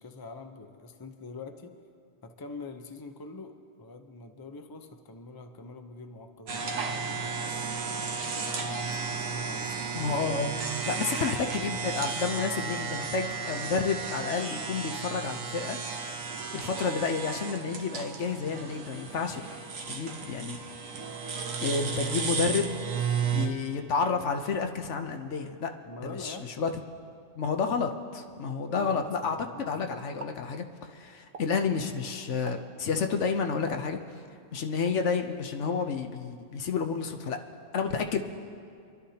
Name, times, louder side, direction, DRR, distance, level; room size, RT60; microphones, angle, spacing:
voice 1, 0.0-1.7 2.2-7.7 8.4-10.2 25.8-26.7 28.7-29.6, left 3 dB, 25° left, 5 dB, 0.6 m, -45 dB
sound 1, 6.5-23.5, right 5 dB, 90° right, 1.4 m, -34 dB
voice 2, 9.9-10.6 10.9-15.8 16.5-19.4 19.9-20.6 21.6-22.8 23.3-25.7 26.0-26.7 27.4-34.0 34.5-37.4 37.7-38.2, left 5 dB, 65° left, 5 dB, 1.1 m, -30 dB
Explosion, 28.9-29.8 30.1-30.5 31.3-31.7 32.5-32.8 33.7-34.4 34.9-35.1, right 4 dB, 45° right, 0.5 m, -47 dB
27.0 x 11.5 x 2.8 m, 2.3 s
omnidirectional pair, 1.3 m